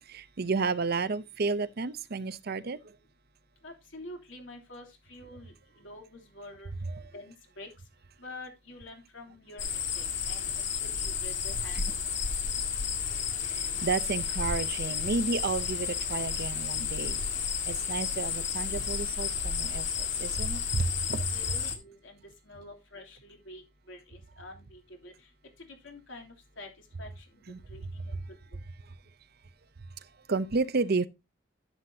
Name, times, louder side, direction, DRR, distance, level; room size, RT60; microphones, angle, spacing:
voice 1, 0.1-2.8 7.0-7.1 11.7-11.8 13.5-17.2 17.7-21.3 27.5-27.6 30.3-31.1, right 4 dB, 55° right, 0.7 m, -31 dB
voice 2, 3.6-6.7 7.1-7.7 8.2-9.7 9.9-11.8 21.3-22.2 22.4-23.6 23.9-25.1 25.8-26.7 27.0-27.3 27.7-28.1, left 2 dB, 90° left, 3.2 m, -47 dB
sound 1, 9.6-21.8, left 6 dB, 70° left, 1.8 m, -32 dB
11.0 x 7.8 x 2.8 m
head